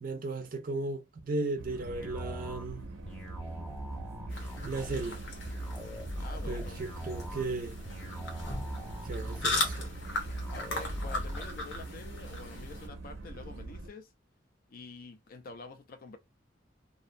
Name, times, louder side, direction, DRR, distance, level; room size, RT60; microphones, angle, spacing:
voice 1, 0.0-2.8 4.6-5.2 6.5-7.8 9.0-9.9, right 3 dB, 45° right, 0.5 m, -35 dB
sound 1, 1.6-13.9, right 2 dB, 90° right, 0.6 m, -44 dB
sound 2, 1.9-11.5, right 1 dB, 5° left, 0.9 m, -40 dB
sound 3, 4.3-12.9, left 2 dB, 75° left, 0.9 m, -38 dB
voice 2, 6.2-6.8 10.5-14.1 14.7-16.2, left 3 dB, 50° left, 0.4 m, -47 dB
2.5 x 2.0 x 2.6 m
head